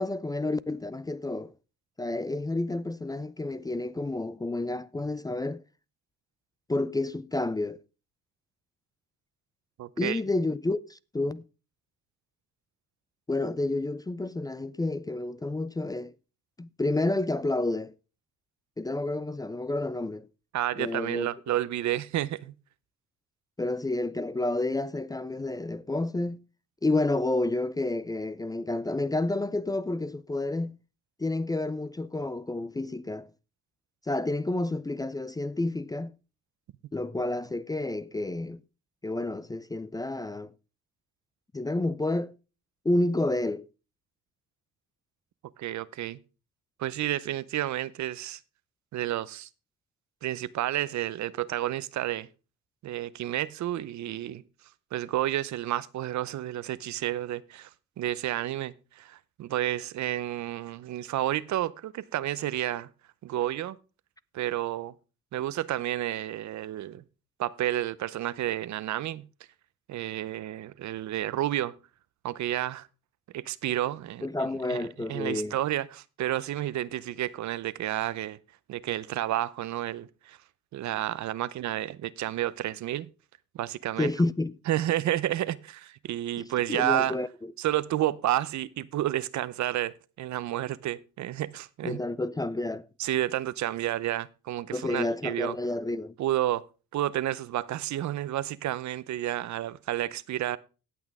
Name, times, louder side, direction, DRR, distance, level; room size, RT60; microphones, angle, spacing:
voice 1, 0.0-1.5 2.0-5.6 6.7-7.8 10.0-11.4 13.3-16.1 16.6-17.9 18.8-20.3 20.8-21.3 23.6-26.4 26.8-30.8 31.2-33.3 34.1-36.1 36.9-38.6 39.0-40.5 41.5-42.3 42.8-43.7 74.2-75.6 84.0-84.6 86.7-87.3 91.8-92.9 94.7-96.1, left 2 dB, 15° left, 0.4 m, -30 dB
voice 2, 9.8-10.2 20.5-22.5 45.6-46.2 46.8-48.4 48.9-49.5 50.2-52.3 52.8-54.4 54.9-57.7 58.0-62.9 63.2-63.8 64.3-64.9 65.3-67.0 67.4-69.3 69.9-71.8 72.2-72.9 73.3-74.3 74.7-74.8 75.1-78.4 78.7-80.4 80.7-83.1 83.5-84.1 84.7-87.2 87.6-92.0 93.0-95.6 96.2-96.6 96.9-100.6, right 13 dB, 70° right, 0.7 m, -30 dB
17.5 x 6.2 x 3.5 m
cardioid pair, 90°, 30 cm